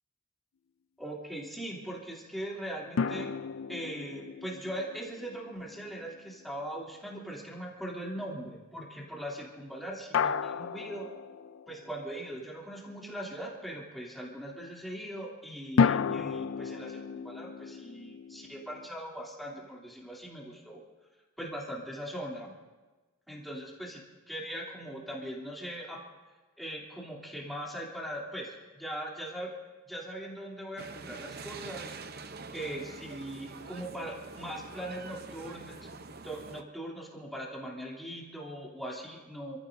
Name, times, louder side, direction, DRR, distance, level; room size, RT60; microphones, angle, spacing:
voice 1, 1.0-3.3 3.7-11.1 11.7-20.8 21.4-22.5 23.3-24.0 24.3-26.0 26.6-29.5 29.8-32.0 32.5-35.8 36.2-39.6, right 1 dB, ahead, -4 dB, 2.9 m, -40 dB
sound 1, 3.0-6.3 10.1-12.1 15.8-18.9, left 6 dB, 70° left, 0.4 m, -32 dB
sound 2, 30.8-36.6, right 4 dB, 50° right, 0.7 m, -45 dB
28.0 x 16.0 x 2.7 m, 1.2 s
head